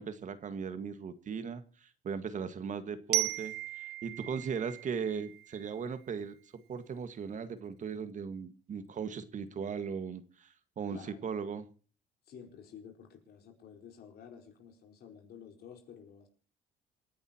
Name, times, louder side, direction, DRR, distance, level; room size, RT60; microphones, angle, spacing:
voice 1, 0.0-11.7, right 6 dB, 45° right, 11 dB, 1.8 m, -38 dB
Glockenspiel, 3.1-6.0, right 16 dB, 70° right, 0.6 m, -36 dB
voice 2, 10.9-11.2 12.3-16.3, left 7 dB, 65° left, 3 dB, 4.8 m, -51 dB
27.0 x 10.5 x 2.9 m, 0.39 s
cardioid pair, 105°, 18 cm